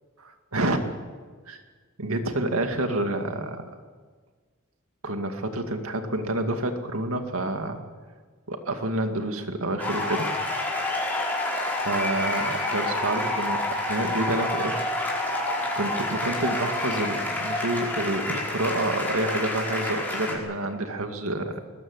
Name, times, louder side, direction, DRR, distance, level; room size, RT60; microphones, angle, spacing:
voice 1, 0.2-0.8 1.5-1.6 2.0-3.6 5.0-7.8 8.5-10.3 11.7-14.8 15.1-15.4 15.7-21.6, right 1 dB, 80° right, 5 dB, 2.3 m, -28 dB
sound 1, 9.8-20.4, left 1 dB, 10° left, 5.1 m, -28 dB
21.0 x 20.5 x 8.2 m, 1.5 s
head